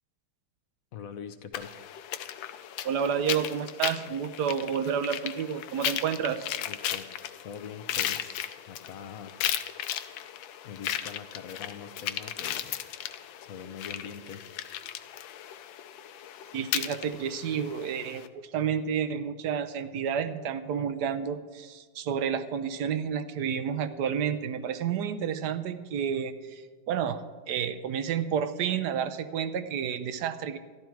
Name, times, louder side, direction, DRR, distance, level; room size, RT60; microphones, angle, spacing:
voice 1, 0.9-1.7 6.7-7.1 7.4-9.3 10.6-12.8 13.4-14.4, left 7 dB, 65° left, 10 dB, 0.9 m, -43 dB
sound 1, 1.5-18.3, left 11 dB, 85° left, 1.4 m, -36 dB
voice 2, 2.8-6.5 16.5-30.6, right 7 dB, 70° right, 11 dB, 1.1 m, -30 dB
13.5 x 11.5 x 4.6 m, 1.4 s
omnidirectional pair, 2.1 m